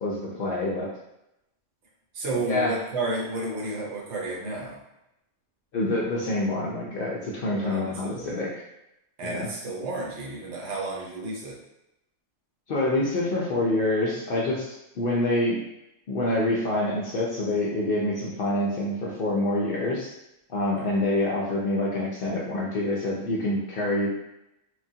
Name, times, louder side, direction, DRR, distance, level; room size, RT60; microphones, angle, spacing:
voice 1, 0.0-0.9 2.5-2.8 5.7-8.5 9.2-9.5 12.7-15.6 16.1-20.1 20.5-24.1, left 1 dB, 60° left, -4 dB, 0.6 m, -26 dB
voice 2, 2.1-4.8 7.6-8.3 9.2-11.6, right 2 dB, 65° right, -3 dB, 1.0 m, -31 dB
3.1 x 2.2 x 2.7 m, 0.88 s
omnidirectional pair, 1.3 m